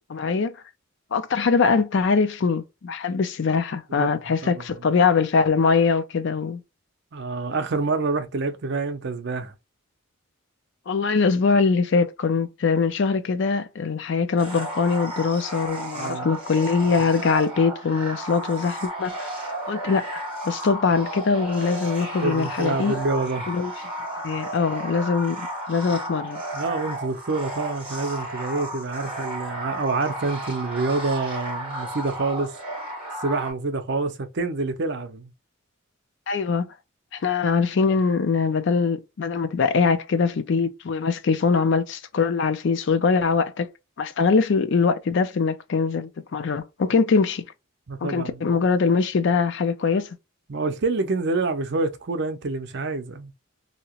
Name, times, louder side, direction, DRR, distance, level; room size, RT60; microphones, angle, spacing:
voice 1, 0.1-0.5 1.1-6.6 10.9-19.3 19.7-23.0 23.5-23.7 24.2-26.4 36.3-36.7 37.1-43.7 44.0-47.4 48.0-50.1, left 5 dB, 60° left, 0.4 m, -22 dB
voice 2, 7.1-9.5 15.9-16.3 22.2-23.5 26.5-32.5 33.2-35.3 47.9-48.6 50.5-53.3, right 3 dB, 55° right, 0.6 m, -27 dB
sound 1, 14.4-33.5, right 1 dB, 5° right, 1.7 m, -33 dB
2.8 x 2.8 x 2.9 m
head